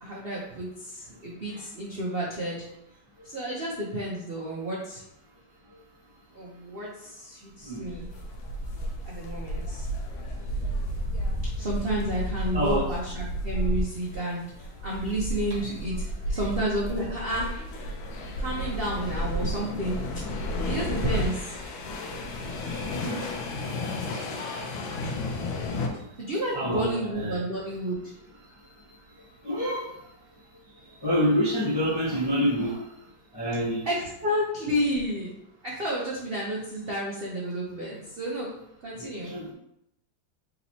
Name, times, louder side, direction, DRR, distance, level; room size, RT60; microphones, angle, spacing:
voice 1, 0.0-2.6 3.2-5.0 6.3-8.1 9.0-9.9 11.6-16.0 16.3-17.5 18.4-20.0 20.6-21.6 23.6-24.0 26.2-28.1 33.8-35.4 35.6-38.5 38.8-39.4, equal, 75° right, -4 dB, 0.5 m, -31 dB
sound 1, 7.8-25.9, left 1 dB, 85° left, 1.5 m, -32 dB
voice 2, 12.5-12.9 22.1-23.2 24.0-24.6 26.5-27.4 29.4-29.9 31.0-32.8 33.3-33.8 39.0-39.5, equal, 35° left, -6 dB, 0.3 m, -28 dB
4.3 x 4.0 x 2.8 m, 0.79 s
omnidirectional pair, 2.2 m